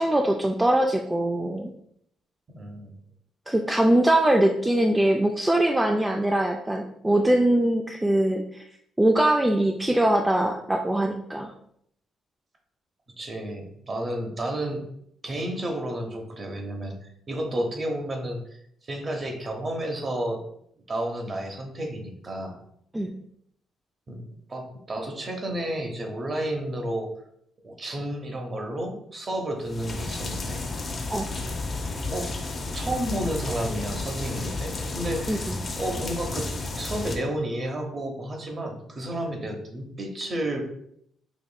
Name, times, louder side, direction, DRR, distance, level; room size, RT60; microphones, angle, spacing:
voice 1, 0.0-1.7 3.5-8.6 9.0-11.5 22.9-23.1 31.1-31.3 35.3-35.5, right 1 dB, 10° right, 2 dB, 0.3 m, -22 dB
voice 2, 2.5-2.9 13.2-14.8 15.2-16.9 17.3-18.4 18.9-20.4 20.9-22.6 24.1-24.2 24.5-27.1 27.6-30.6 32.1-32.3 32.7-35.5 35.8-40.6, right 1 dB, 35° right, 3 dB, 0.8 m, -31 dB
sound 1, 29.6-37.2, left 3 dB, 35° left, 0.6 m, -32 dB
5.0 x 3.0 x 2.2 m, 0.71 s
cardioid pair, 90°, 0 cm